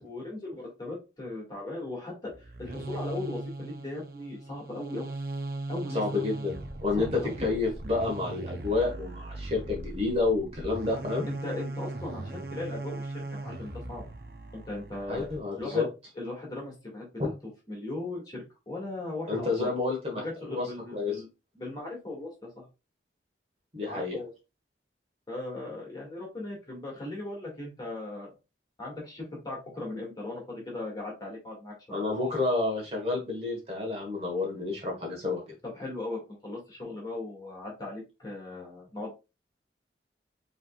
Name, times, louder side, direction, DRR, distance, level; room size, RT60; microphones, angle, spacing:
voice 1, 0.0-5.1 5.7-6.2 7.0-7.3 11.2-14.0 14.5-15.3 15.6-15.9 16.2-17.3 17.7-19.7 20.2-21.3 21.5-22.7 23.8-24.3 25.3-28.3 28.8-32.0 35.6-39.1, left 2 dB, 25° left, -2 dB, 2.1 m, -38 dB
sound 1, 2.3-15.4, right 2 dB, 55° right, 0.7 m, -39 dB
voice 2, 5.9-7.1 7.4-11.3 15.1-15.8 17.2-17.3 19.3-20.6 20.9-21.1 23.7-24.2 31.9-35.4, left 3 dB, 35° right, 0 dB, 1.5 m, -29 dB
5.6 x 3.4 x 2.4 m, 0.27 s
head